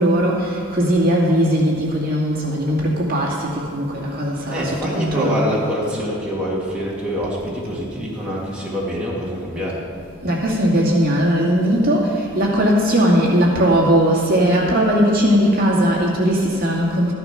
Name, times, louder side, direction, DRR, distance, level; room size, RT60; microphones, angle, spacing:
voice 1, 0.0-5.5 10.2-17.1, equal, 45° right, -4 dB, 2.3 m, -18 dB
voice 2, 4.5-9.8, equal, 5° right, -7 dB, 2.5 m, -25 dB
14.0 x 11.5 x 5.8 m, 2.3 s
head